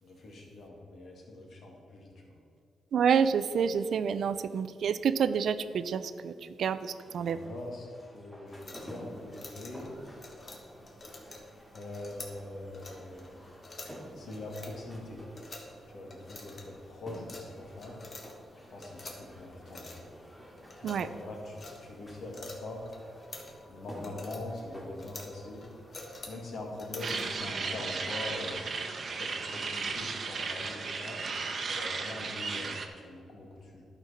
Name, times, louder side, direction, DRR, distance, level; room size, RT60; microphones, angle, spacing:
voice 1, 0.0-2.4 7.2-7.9 8.1-9.9 11.7-13.3 14.1-15.2 15.9-17.9 18.7-20.0 20.8-22.8 23.7-25.6 26.2-28.6 29.2-31.3 31.6-32.8 33.0-33.8, left 2 dB, 65° left, -1 dB, 2.0 m, -43 dB
voice 2, 2.9-6.3 6.6-7.4 20.8-21.1, right 7 dB, 70° right, 13 dB, 0.4 m, -28 dB
sound 1, 6.8-26.4, equal, 5° left, 2.0 m, -51 dB
sound 2, 8.5-27.4, left 2 dB, 40° left, 1.5 m, -49 dB
sound 3, 27.0-32.9, right 4 dB, 50° right, 0.8 m, -35 dB
11.5 x 4.6 x 5.6 m, 2.3 s
cardioid pair, 95°, 0 cm